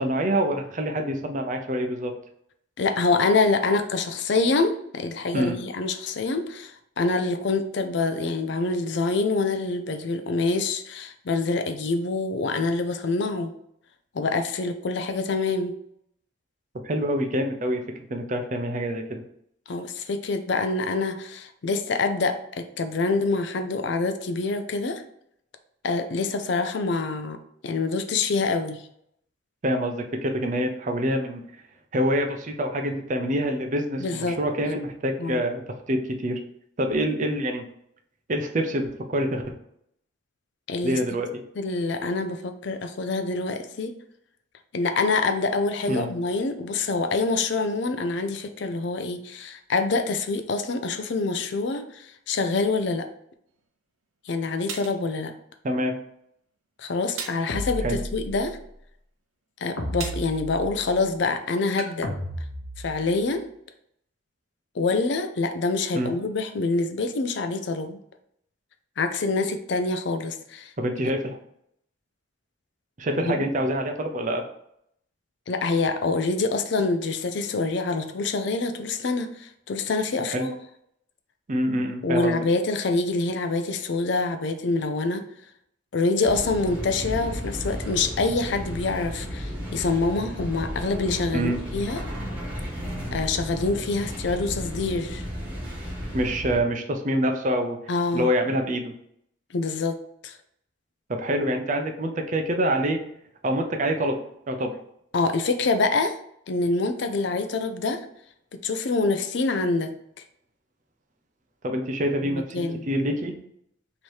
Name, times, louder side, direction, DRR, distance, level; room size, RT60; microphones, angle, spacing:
voice 1, 0.0-2.1 5.3-5.5 16.8-17.8 18.1-19.2 29.6-31.4 31.9-36.4 36.8-37.6 38.3-39.4 40.8-41.3 45.9-46.1 55.6-56.0 57.8-58.0 65.9-66.1 70.8-71.4 73.0-74.4 80.3-80.5 81.5-82.3 91.3-91.6 96.1-97.8 98.1-98.9 101.1-103.0 103.4-104.2 104.5-104.7 111.6-113.4, equal, 40° right, 4 dB, 0.5 m, -26 dB
voice 2, 2.8-13.5 14.1-15.7 19.7-25.0 25.8-27.4 27.6-28.8 34.0-34.4 35.2-35.4 40.7-41.0 41.6-43.9 44.7-53.1 54.3-55.3 56.8-58.6 59.6-62.1 62.8-63.4 64.7-68.0 69.0-70.7 73.2-73.5 75.5-80.5 82.0-85.2 85.9-92.0 93.1-95.3 97.9-98.3 99.5-100.0 100.2-100.4 105.1-106.2 106.5-108.0 108.6-109.9 112.2-112.9, left 3 dB, 60° left, 7 dB, 0.4 m, -26 dB
sound 1, 53.6-53.7 54.7-55.0 57.2-57.5 60.0-60.3 61.8-62.0, right 6 dB, 90° right, 0.6 m, -35 dB
sound 2, 57.5-58.6 59.8-61.0 62.0-63.3, equal, 80° left, 0.8 m, -33 dB
sound 3, 86.2-96.6, equal, 10° right, 1.2 m, -34 dB
3.2 x 2.8 x 4.5 m, 0.73 s
head